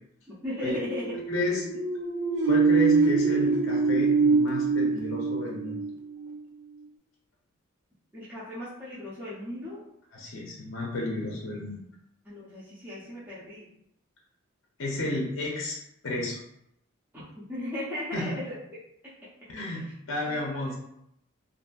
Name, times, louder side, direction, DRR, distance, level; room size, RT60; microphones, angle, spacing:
voice 1, 0.3-1.1 8.1-9.8 12.2-13.7 17.1-18.6 19.7-19.8 20.2-20.8, left 1 dB, 10° right, -11 dB, 0.7 m, -37 dB
sound 1, 0.7-6.4, right 4 dB, 70° right, 0.5 m, -24 dB
voice 2, 1.3-1.7 2.5-5.8 10.1-11.8 14.8-15.8 16.0-16.4 18.1-18.3 19.5-20.8, left 1 dB, 70° left, -2 dB, 0.6 m, -32 dB
2.6 x 2.6 x 2.3 m, 0.75 s
head